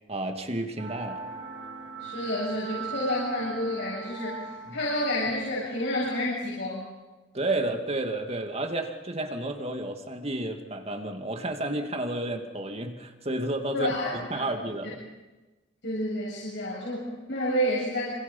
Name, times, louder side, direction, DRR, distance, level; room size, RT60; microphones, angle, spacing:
voice 1, 0.1-1.2 4.7-4.8 7.3-15.0, right 2 dB, 35° right, 5 dB, 2.4 m, -31 dB
sound 1, 0.8-6.2, right 5 dB, 80° right, 6.9 m, -40 dB
voice 2, 2.0-4.4 4.7-6.9 13.7-14.1 15.8-18.1, left 1 dB, 65° left, -6 dB, 7.7 m, -29 dB
27.5 x 27.0 x 5.6 m, 1.2 s
head